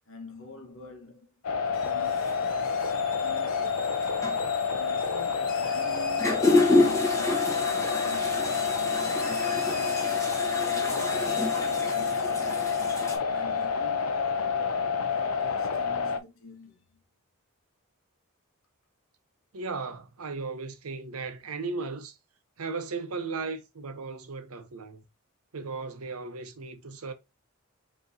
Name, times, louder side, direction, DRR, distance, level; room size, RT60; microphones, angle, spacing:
voice 1, 0.1-1.3 1.6-3.9 4.7-9.1 9.5-10.2 10.5-12.7 13.3-16.8, left 2 dB, 65° left, 1.1 m, -46 dB
sound 1, 1.4-16.2, left 5 dB, 90° left, 0.5 m, -28 dB
sound 2, 1.7-14.0, left 5 dB, 45° left, 0.9 m, -45 dB
sound 3, 2.1-2.3 3.5-3.6 4.0-4.4 5.6-5.7 6.0-13.2, left 2 dB, 15° left, 1.2 m, -28 dB
voice 2, 19.5-22.1 22.6-25.0 25.5-27.1, right 4 dB, 90° right, 0.8 m, -36 dB
5.2 x 3.0 x 2.6 m
head